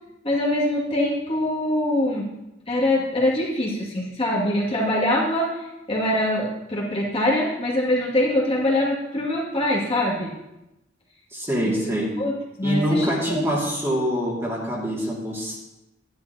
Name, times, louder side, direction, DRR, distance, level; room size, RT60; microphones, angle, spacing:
voice 1, 0.2-2.3 2.7-10.3 11.6-12.3 12.6-13.4, left 1 dB, 30° left, -5 dB, 2.3 m, -23 dB
voice 2, 11.3-12.1 12.6-15.6, equal, 15° right, -4 dB, 2.3 m, -25 dB
12.0 x 11.5 x 2.9 m, 0.92 s
head